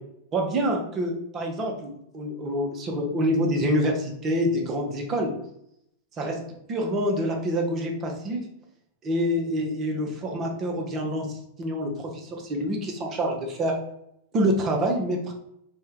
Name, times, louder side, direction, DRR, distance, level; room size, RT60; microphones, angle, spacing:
voice 1, 0.3-5.3 6.2-6.4 6.7-8.4 9.0-13.7 14.3-15.3, equal, 30° right, 1 dB, 0.6 m, -26 dB
2.7 x 2.2 x 3.6 m, 0.76 s
figure-of-eight pair, 90°, 0 cm